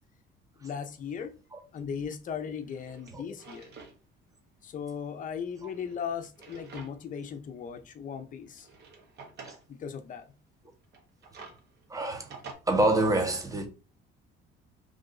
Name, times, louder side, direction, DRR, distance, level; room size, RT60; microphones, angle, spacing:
voice 1, 0.6-1.3 1.7-3.7 4.6-8.7 9.7-10.3, left 7 dB, 40° left, 0.6 m, -37 dB
Drawer open or close, 1.9-2.0 2.6-4.0 4.3-4.4 5.5-7.2 7.6-7.7 8.5-9.6 10.8-12.5, right 4 dB, 55° right, 1.2 m, -49 dB
voice 2, 11.9-12.3 12.7-13.7, right 1 dB, 15° right, 0.9 m, -26 dB
3.2 x 2.5 x 3.8 m
cardioid pair, 115°, 21 cm